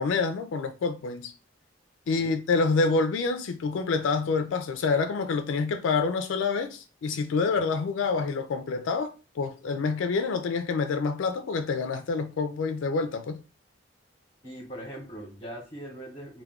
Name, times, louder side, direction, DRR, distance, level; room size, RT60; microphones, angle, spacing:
voice 1, 0.0-1.3 2.1-13.4, left 4 dB, 85° left, 0.4 m, -27 dB
voice 2, 14.4-16.4, right 1 dB, 30° left, 0.7 m, -40 dB
2.3 x 2.2 x 3.4 m
head